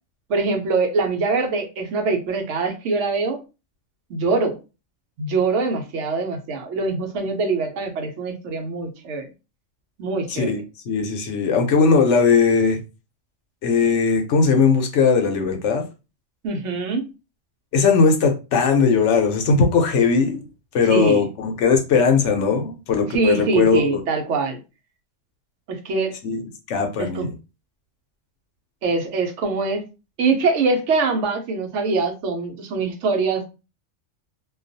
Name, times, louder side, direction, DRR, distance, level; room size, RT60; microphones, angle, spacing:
voice 1, 0.3-3.4 4.1-4.6 5.2-9.3 10.0-10.5 16.4-17.0 20.9-21.2 23.1-24.6 25.7-26.1 27.0-27.3 28.8-29.8 30.2-33.5, right 4 dB, 75° right, 0.9 m, -23 dB
voice 2, 10.3-12.8 13.6-15.8 17.7-20.4 20.7-24.0 26.2-26.4 26.7-27.3, left 5 dB, 75° left, 0.9 m, -19 dB
2.3 x 2.3 x 2.6 m
omnidirectional pair, 1.3 m